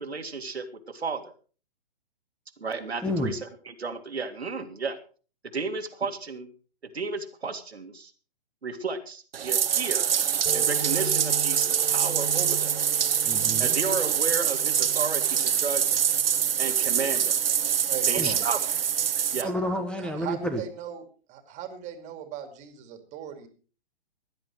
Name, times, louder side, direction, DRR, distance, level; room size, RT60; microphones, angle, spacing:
voice 1, 0.0-1.3 2.6-5.0 5.4-6.5 6.9-8.1 8.6-10.1 10.5-12.7 13.6-16.0 16.6-17.4 18.1-18.6 19.3-19.5, right 4 dB, 85° right, 5 dB, 2.3 m, -33 dB
voice 2, 3.0-3.3 13.2-13.8 18.2-18.3 19.4-20.6, left 1 dB, 5° left, 7 dB, 1.2 m, -30 dB
Bathtub (filling or washing), 9.3-19.4, right 8 dB, 65° right, 1.3 m, -25 dB
sound 1, 10.5-17.8, right 3 dB, 75° left, 4.8 m, -39 dB
voice 3, 17.9-18.5 19.4-19.5 20.0-23.5, right 9 dB, 25° right, 8 dB, 2.4 m, -38 dB
16.5 x 11.0 x 4.7 m, 0.39 s
figure-of-eight pair, 130°, 31 cm